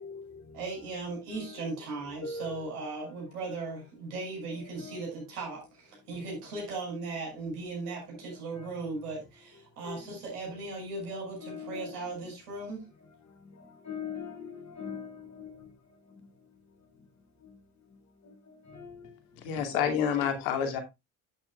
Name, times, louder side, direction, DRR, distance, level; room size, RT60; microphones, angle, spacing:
voice 1, 0.0-0.8 1.3-1.9 2.2-2.9 4.5-5.0 8.3-8.8 9.8-10.2 10.5-10.6 11.4-12.3 13.6-15.7 18.2-19.2 19.6-20.4, left 5 dB, 40° left, 4.6 m, -43 dB
voice 2, 0.5-12.8, right 3 dB, 85° right, 6.4 m, -37 dB
voice 3, 19.4-20.8, left 8 dB, 70° left, 2.7 m, -28 dB
11.5 x 9.0 x 2.3 m
hypercardioid pair, 55°, 44 cm